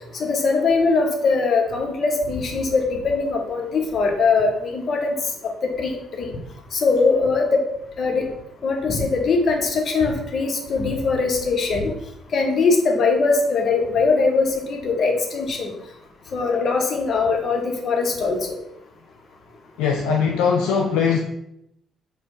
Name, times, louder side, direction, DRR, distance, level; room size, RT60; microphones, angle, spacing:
voice 1, 0.2-5.1 5.6-5.9 6.2-6.3 6.7-7.6 8.0-8.2 8.6-11.9 12.3-15.7 16.3-18.6, left 4 dB, 45° left, 2 dB, 0.9 m, -21 dB
voice 2, 19.8-21.2, left 6 dB, 70° left, 1 dB, 0.4 m, -20 dB
4.2 x 2.3 x 4.6 m, 0.79 s
figure-of-eight pair, 40°, 0 cm